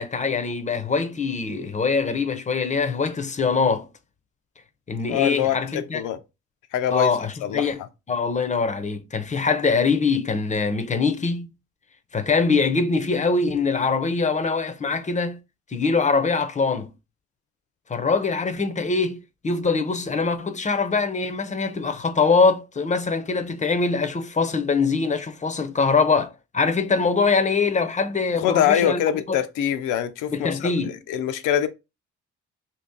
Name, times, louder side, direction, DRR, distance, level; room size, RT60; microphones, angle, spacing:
voice 1, 0.0-3.9 4.9-6.0 6.9-7.8 8.1-11.5 12.1-15.4 15.7-16.9 17.9-19.2 19.4-29.4 30.3-31.0, left 4 dB, 25° left, 0.5 m, -23 dB
voice 2, 5.1-6.2 6.7-7.1 7.4-7.7 28.3-31.7, left 10 dB, 90° left, 0.5 m, -24 dB
2.8 x 2.7 x 3.7 m
cardioid pair, 90°, 30 cm